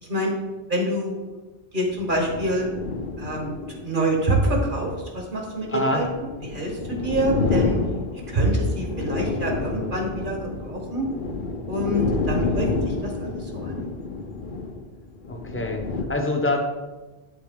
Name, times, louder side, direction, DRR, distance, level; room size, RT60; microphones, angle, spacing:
voice 1, 0.7-1.2 1.7-2.7 3.2-6.1 6.4-7.8 8.3-11.1 11.7-13.9, right 1 dB, 50° right, 0 dB, 1.7 m, -26 dB
sound 1, 1.8-16.0, left 3 dB, 55° left, 0.8 m, -29 dB
voice 2, 5.7-6.0 15.3-16.6, left 2 dB, 15° left, 3 dB, 0.8 m, -25 dB
11.0 x 4.0 x 3.7 m, 1.2 s
omnidirectional pair, 1.1 m